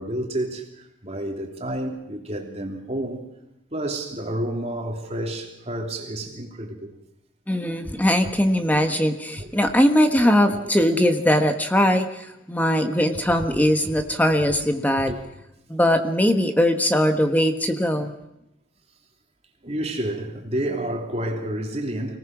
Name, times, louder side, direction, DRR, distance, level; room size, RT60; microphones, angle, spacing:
voice 1, 0.0-3.2 3.7-6.9 8.7-8.8 9.4-9.5 10.2-10.7 15.0-15.3 19.6-22.2, right 1 dB, 30° right, 3.1 m, -30 dB
voice 2, 7.5-15.1 15.7-18.1, equal, 10° left, 1.3 m, -20 dB
25.5 x 19.0 x 6.1 m
head